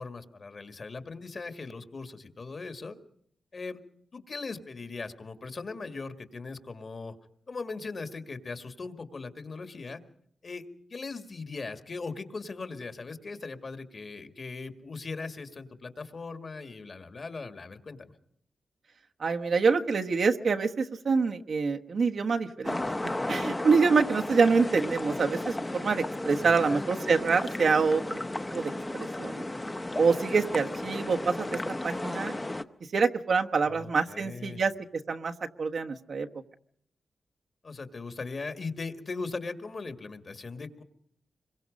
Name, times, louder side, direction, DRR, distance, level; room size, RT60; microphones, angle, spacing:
voice 1, 0.0-3.0 3.5-3.8 4.1-7.1 7.5-10.0 10.4-10.6 10.9-18.1 26.4-26.8 33.6-34.6 37.6-40.8, left 4 dB, 45° left, 9 dB, 2.0 m, -39 dB
voice 2, 19.2-22.8 23.3-28.2 28.5-29.4 30.0-32.3 32.9-35.3 35.6-36.3, right 4 dB, 60° right, 4 dB, 1.3 m, -26 dB
sound 1, 22.6-32.6, left 1 dB, 15° left, 0.9 m, -34 dB
26.5 x 22.5 x 5.3 m, 0.67 s
wide cardioid pair, 120°, 0 cm